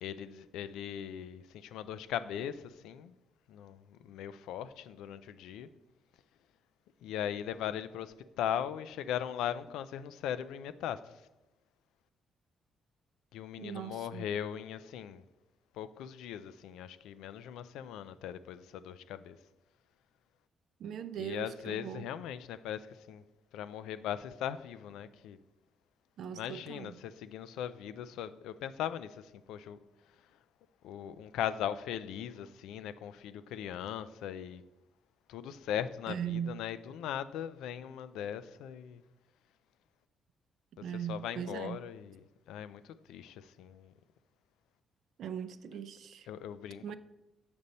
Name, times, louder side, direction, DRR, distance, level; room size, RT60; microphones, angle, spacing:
voice 1, 0.0-3.1 3.5-5.7 7.0-11.2 13.3-15.3 15.7-19.4 21.2-23.2 23.5-25.4 26.3-29.8 30.8-34.6 35.3-39.0 40.8-43.9 46.3-46.8, left 10 dB, 90° left, 0.3 m, -39 dB
voice 2, 13.6-14.3 20.8-22.0 26.2-27.0 36.1-36.5 40.8-41.8 45.2-46.3 46.8-46.9, right 8 dB, 70° right, 0.4 m, -39 dB
6.9 x 5.2 x 4.1 m
cardioid pair, 90°, 0 cm